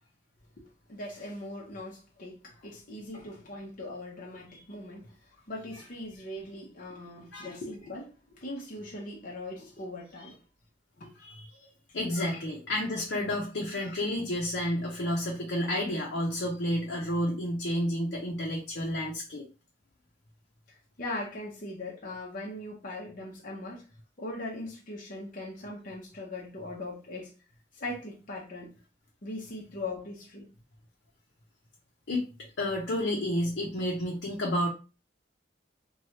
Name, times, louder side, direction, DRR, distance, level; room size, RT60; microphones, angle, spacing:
voice 1, 0.6-10.4 11.0-11.1 20.7-23.9 24.2-27.3 27.7-28.7 29.2-30.5, left 2 dB, 50° left, 0.7 m, -40 dB
voice 2, 11.9-19.4 32.1-32.2 32.6-34.7, left 1 dB, 90° left, 0.7 m, -30 dB
3.1 x 2.3 x 2.8 m
head